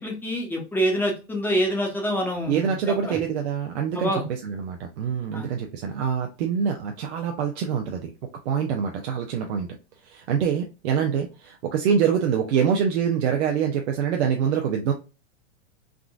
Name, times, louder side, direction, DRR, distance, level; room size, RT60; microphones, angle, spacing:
voice 1, 0.0-2.8 3.0-3.2 3.9-4.3 5.3-5.5, equal, 5° left, -1 dB, 0.9 m, -26 dB
voice 2, 2.5-8.1 8.4-9.7 10.0-14.9, right 7 dB, 70° right, 3 dB, 0.7 m, -25 dB
3.7 x 2.4 x 2.3 m, 0.31 s
supercardioid pair, 135°, 35 cm